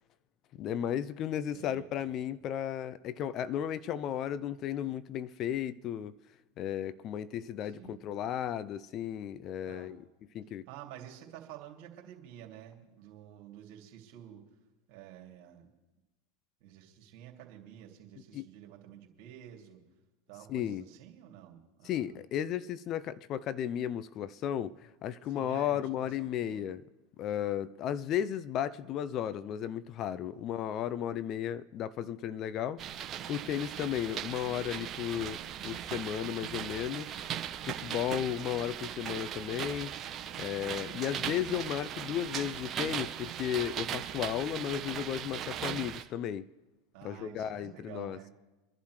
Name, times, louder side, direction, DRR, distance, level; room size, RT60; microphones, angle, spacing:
voice 1, 0.6-6.1 6.6-10.0 10.3-10.6 18.3-18.4 20.5-20.8 21.8-26.8 27.2-37.2 37.7-39.9 40.4-46.5 47.0-48.2, left 10 dB, 40° left, 0.6 m, -34 dB
voice 2, 1.5-1.9 7.6-8.0 9.7-9.9 10.7-14.4 14.9-15.7 16.6-19.8 20.3-22.3 25.3-26.6 30.2-30.5 33.4-33.6 40.8-41.1 46.9-48.3, right 11 dB, 55° right, 2.7 m, -50 dB
sound 1, 32.8-46.0, right 9 dB, 30° right, 1.2 m, -38 dB
26.0 x 11.5 x 3.2 m
hypercardioid pair, 90°, 0 cm